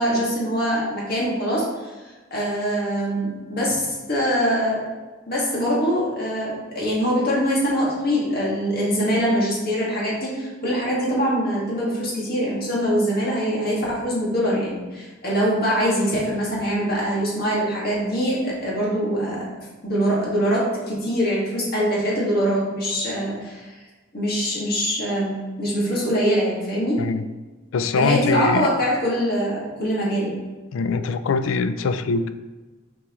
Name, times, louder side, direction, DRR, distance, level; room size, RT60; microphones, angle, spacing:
voice 1, 0.0-1.9 2.3-4.8 5.3-23.7 24.1-27.0 28.0-30.3, equal, 50° left, -5 dB, 1.9 m, -23 dB
voice 2, 27.7-28.7 30.7-32.3, left 4 dB, 80° left, 11 dB, 0.4 m, -23 dB
7.1 x 4.5 x 3.0 m, 1.2 s
head